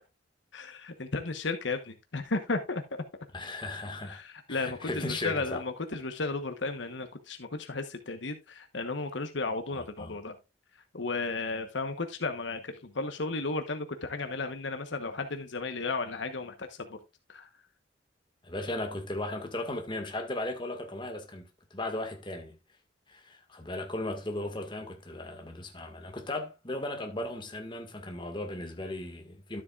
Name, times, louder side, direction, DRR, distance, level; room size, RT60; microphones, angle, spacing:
voice 1, 0.5-2.8 4.0-10.3 10.9-17.0 17.3-17.5, left 3 dB, 70° left, 1.2 m, -34 dB
voice 2, 3.3-4.2 4.5-5.6 9.7-10.2 18.4-22.6 23.1-29.6, left 1 dB, 25° left, 1.9 m, -36 dB
12.5 x 7.8 x 2.4 m
head